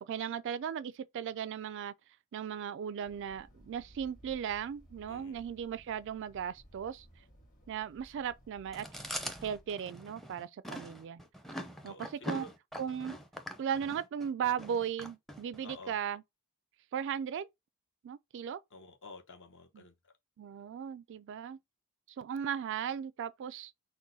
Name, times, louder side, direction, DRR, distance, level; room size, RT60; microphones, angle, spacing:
voice 1, 0.0-1.9 2.3-7.1 7.7-8.9 9.4-11.2 11.8-11.9 12.3-12.5 12.8-13.2 13.6-16.2 16.9-17.5 18.0-18.6 20.4-21.6 22.2-23.7, right 8 dB, 55° right, 0.3 m, -37 dB
sound 1, 3.0-9.7, equal, 35° left, 1.4 m, -59 dB
voice 2, 5.1-5.4 11.8-12.5 15.6-16.0 18.7-20.1, left 3 dB, 55° left, 0.9 m, -51 dB
Chewing mastication, 8.7-15.8, equal, ahead, 0.6 m, -43 dB
6.1 x 2.2 x 4.0 m
head